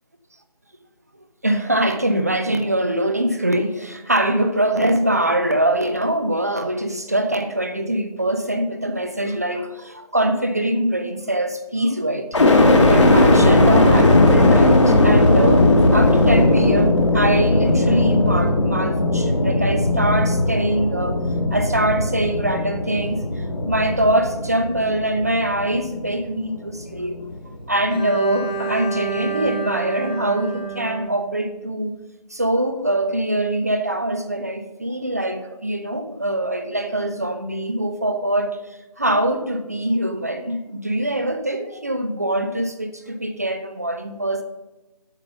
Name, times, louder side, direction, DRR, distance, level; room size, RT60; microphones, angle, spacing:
voice 1, 1.4-21.2 21.5-27.2 27.7-32.0 32.3-38.6 39.0-44.4, right 1 dB, 25° right, 0.5 m, -23 dB
sound 1, 12.3-26.3 26.8-27.6, left 2 dB, 50° left, 1.4 m, -17 dB
Bowed string instrument, 27.9-31.9, right 5 dB, 10° left, 1.2 m, -30 dB
8.2 x 5.1 x 6.7 m
figure-of-eight pair, 170°, 20 cm